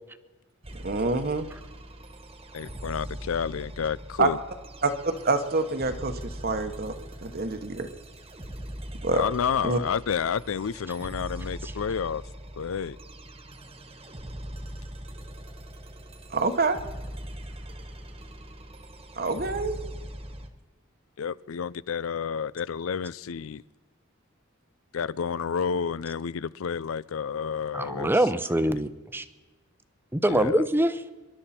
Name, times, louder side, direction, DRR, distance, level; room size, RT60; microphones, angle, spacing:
sound 1, 0.6-20.5, right 1 dB, 30° right, 1.4 m, -41 dB
voice 1, 0.8-1.5 4.2-4.3 4.8-4.9 5.2-6.9 7.2-7.9 9.0-9.2 9.6-9.8 16.3-16.8 19.1-19.8, right 3 dB, 50° right, 7 dB, 1.1 m, -26 dB
voice 2, 2.5-4.4 9.1-12.2 12.6-13.0 21.2-23.6 24.9-28.1 30.3-30.7, left 7 dB, 90° left, 20 dB, 0.5 m, -30 dB
voice 3, 27.7-29.2 30.1-31.1, right 1 dB, 10° right, 12 dB, 0.7 m, -24 dB
27.0 x 12.0 x 4.3 m, 1.2 s
head